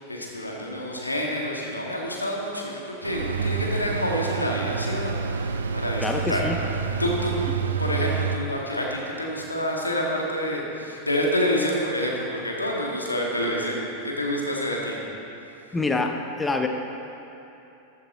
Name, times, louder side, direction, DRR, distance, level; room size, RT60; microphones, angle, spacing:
voice 1, 0.0-6.5 7.0-7.3 7.8-15.0, equal, 85° left, -2 dB, 1.9 m, -28 dB
sound 1, 3.0-8.4, right 6 dB, 70° right, 0.5 m, -28 dB
voice 2, 6.0-6.6 15.7-16.7, left 3 dB, 10° left, 4 dB, 0.8 m, -26 dB
14.5 x 9.6 x 4.3 m, 3.0 s
figure-of-eight pair, 90°, 0 cm